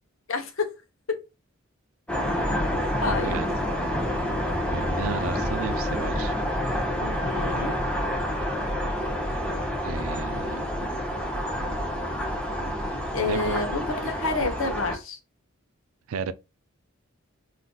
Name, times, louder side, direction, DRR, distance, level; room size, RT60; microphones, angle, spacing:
voice 1, 0.3-0.7 1.1-1.2 3.0-3.4 7.0-7.8 13.1-15.2, left 3 dB, 70° left, 0.7 m, -29 dB
sound 1, 2.1-15.0, equal, 5° left, 0.6 m, -28 dB
voice 2, 3.2-3.5 4.7-6.3 9.8-10.7 13.2-13.7 16.1-16.3, right 6 dB, 80° right, 0.4 m, -33 dB
3.8 x 2.5 x 2.2 m
head